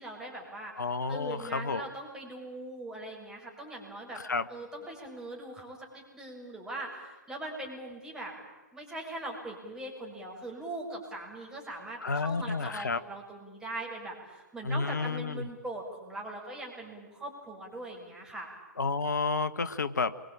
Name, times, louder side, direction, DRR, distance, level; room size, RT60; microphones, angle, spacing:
voice 1, 0.0-0.7 1.1-4.2 4.5-8.3 8.7-18.5, right 1 dB, 5° right, -2 dB, 7.3 m, -41 dB
voice 2, 0.8-1.9 4.2-4.5 12.0-13.0 14.6-15.5 18.8-20.2, left 4 dB, 70° left, 14 dB, 1.3 m, -31 dB
28.0 x 23.5 x 9.0 m, 1.1 s
figure-of-eight pair, 120°, 10 cm